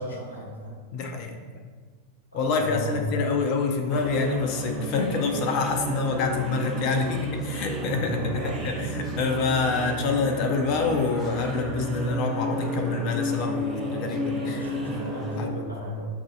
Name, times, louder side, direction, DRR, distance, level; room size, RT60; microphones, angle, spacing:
voice 1, 0.0-0.7 2.3-3.0 7.9-8.7 14.3-16.1, equal, 80° left, -4 dB, 1.1 m, -35 dB
voice 2, 0.9-1.6 2.3-14.7 15.4-15.7, left 4 dB, 45° left, 4 dB, 0.6 m, -27 dB
sound 1, 3.9-15.5, equal, 10° right, 0.8 m, -32 dB
6.9 x 2.6 x 2.7 m, 1.4 s
figure-of-eight pair, 90°, 0 cm